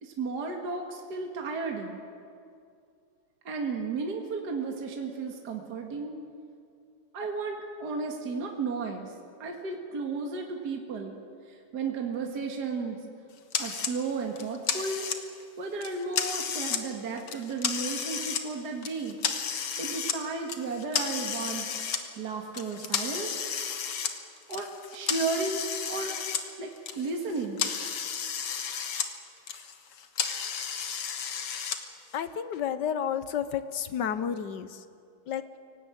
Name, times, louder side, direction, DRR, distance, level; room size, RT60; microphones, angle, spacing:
voice 1, 0.0-2.0 3.5-6.2 7.1-9.1 9.4-11.2 11.5-13.0 13.6-15.1 15.6-19.2 19.5-21.7 22.2-23.4 24.5-26.2 26.6-27.7, right 4 dB, 50° right, 1 dB, 2.3 m, -34 dB
sound 1, 13.5-13.9 14.4-15.4 15.8-16.8 17.2-18.4 18.8-20.2 20.5-22.0 22.5-26.4 26.7-29.1 29.4-31.8, left 7 dB, 80° left, 2.4 m, -32 dB
voice 2, 32.1-34.8 35.3-35.4, left 8 dB, 60° left, 12 dB, 1.3 m, -31 dB
24.0 x 17.5 x 9.0 m, 2.4 s
omnidirectional pair, 2.4 m